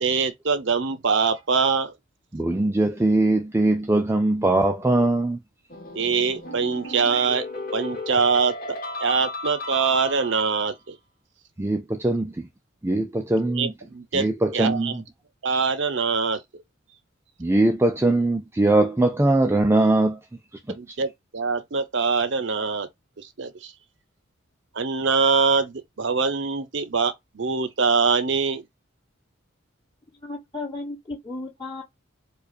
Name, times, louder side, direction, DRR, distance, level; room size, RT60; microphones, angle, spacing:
voice 1, 0.0-1.9 5.9-7.4 7.7-10.9 13.6-14.3 14.5-15.0 15.4-16.4 20.7-22.9 23.2-23.7 24.7-28.6, right 5 dB, 60° right, 0.7 m, -24 dB
voice 2, 2.3-5.4 11.6-12.5 12.8-13.7 14.1-15.0 17.4-20.2 20.7-21.0, right 2 dB, 10° right, 0.4 m, -21 dB
sound 1, 5.7-10.6, left 2 dB, 45° left, 1.5 m, -34 dB
voice 3, 30.2-31.8, left 2 dB, 25° left, 2.2 m, -34 dB
4.8 x 2.4 x 2.4 m
head